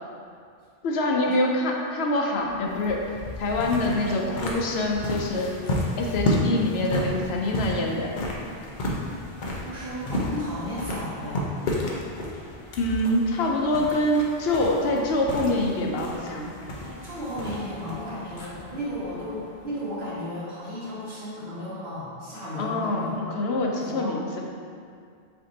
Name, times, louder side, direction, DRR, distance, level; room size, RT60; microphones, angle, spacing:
voice 1, 0.8-3.0 3.4-5.5 6.0-8.1 12.8-16.5 22.6-24.4, left 1 dB, 85° left, 0 dB, 0.9 m, -25 dB
sound 1, 2.4-20.0, left 1 dB, 55° left, 0.7 m, -32 dB
voice 2, 9.4-11.5 16.8-23.3 23.7-24.1, equal, 70° right, -12 dB, 1.2 m, -34 dB
4.7 x 2.7 x 3.8 m, 2.2 s
omnidirectional pair, 1.0 m